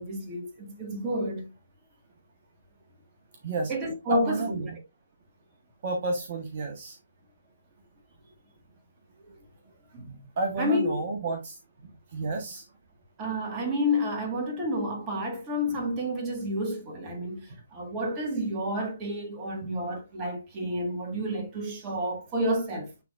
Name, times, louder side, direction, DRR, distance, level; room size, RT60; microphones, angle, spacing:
voice 1, 0.0-1.5 3.7-4.7 9.9-10.2 10.6-11.0 13.2-22.9, equal, 20° right, 2.0 m, -30 dB
voice 2, 4.1-4.7 5.8-7.0 10.4-12.7 19.6-19.8, right 3 dB, 45° right, 1.4 m, -31 dB
9.9 x 3.7 x 2.6 m
figure-of-eight pair, 140°, 0 cm